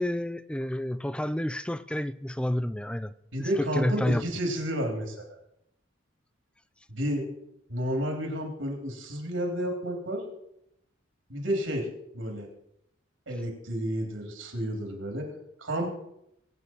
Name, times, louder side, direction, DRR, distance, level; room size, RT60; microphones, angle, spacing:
voice 1, 0.0-3.1 3.4-4.2, left 1 dB, 5° left, 0.4 m, -29 dB
voice 2, 3.3-5.2 6.9-7.3 7.7-10.2 11.3-11.9 12.1-12.5 13.3-15.3 15.6-15.9, equal, 80° right, 3.5 m, -31 dB
23.0 x 9.0 x 4.6 m
head